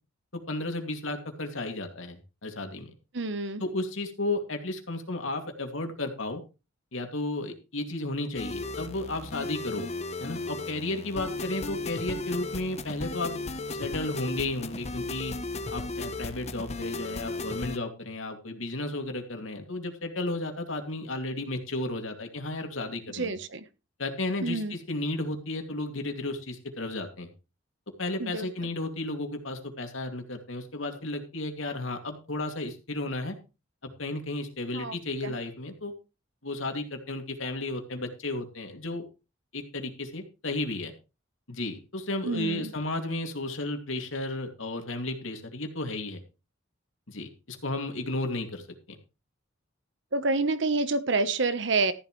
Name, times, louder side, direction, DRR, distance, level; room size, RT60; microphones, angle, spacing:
voice 1, 0.3-2.9 3.6-6.4 6.9-9.9 10.2-13.4 13.7-15.3 15.7-23.4 24.0-27.3 28.0-33.4 33.8-35.9 36.4-39.0 39.5-40.9 41.5-46.2 47.1-48.6 48.9-49.0, left 2 dB, 75° left, 4 dB, 2.5 m, -33 dB
voice 2, 3.1-3.6 23.1-23.6 24.4-24.7 28.2-28.5 34.7-35.0 35.2-35.3 42.2-42.7 50.1-51.9, right 3 dB, 60° right, 12 dB, 1.1 m, -28 dB
Storm RG - Cool Journey, 8.4-17.8, left 2 dB, 35° left, 0.9 m, -36 dB
14.0 x 11.0 x 3.2 m, 0.30 s
head